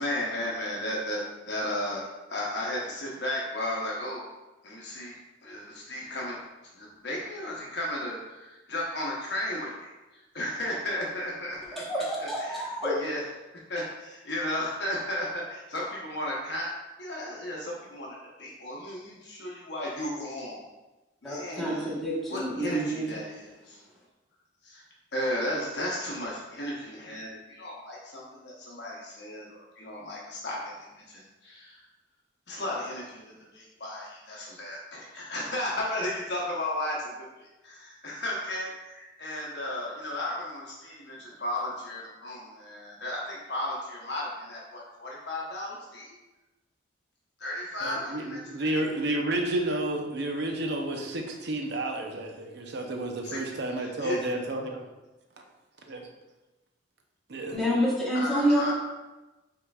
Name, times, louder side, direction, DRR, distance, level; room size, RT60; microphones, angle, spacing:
voice 1, 0.0-4.2 4.6-5.1 5.4-6.4 6.8-11.8 12.2-13.2 13.7-16.7 17.0-20.6 21.2-21.9 22.3-23.8 24.6-24.8 25.1-31.8 32.5-46.2 47.4-48.7 53.2-53.5 53.8-54.2 58.1-58.7, left 1 dB, 60° left, -4 dB, 0.9 m, -34 dB
voice 2, 11.7-12.9 21.2-23.1 57.5-58.7, equal, ahead, -7 dB, 1.1 m, -28 dB
voice 3, 47.8-54.9 55.9-56.1 57.3-57.6, right 1 dB, 60° right, 2 dB, 0.7 m, -31 dB
5.6 x 3.8 x 2.4 m, 1.1 s
head